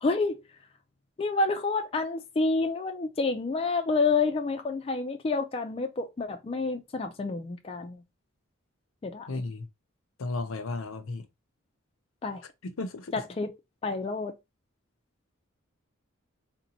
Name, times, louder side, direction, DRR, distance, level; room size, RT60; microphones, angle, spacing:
voice 1, 0.0-0.4 1.2-8.0 9.0-9.4 12.2-12.4 13.1-13.5 13.8-14.3, left 3 dB, 25° left, 0.3 m, -29 dB
voice 2, 9.3-9.7 10.2-11.2 12.6-13.1, left 3 dB, 75° left, 0.6 m, -34 dB
3.8 x 2.2 x 2.8 m
head